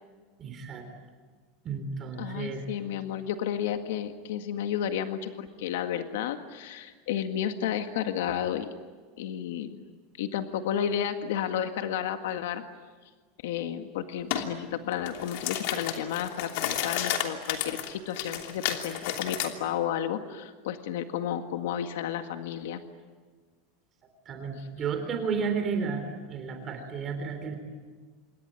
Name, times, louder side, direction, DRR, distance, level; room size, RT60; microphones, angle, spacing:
voice 1, 0.4-0.8 1.6-2.6 24.3-26.0 26.3-27.5, right 5 dB, 25° right, 5 dB, 3.5 m, -32 dB
voice 2, 2.2-8.7 9.2-9.8 10.2-12.6 13.4-22.8, left 9 dB, 80° left, 7 dB, 1.8 m, -32 dB
sound 1, 14.3-14.5 14.9-19.5, left 11 dB, 60° left, 2.9 m, -32 dB
27.5 x 22.0 x 9.8 m, 1.4 s
supercardioid pair, 170°, 0 cm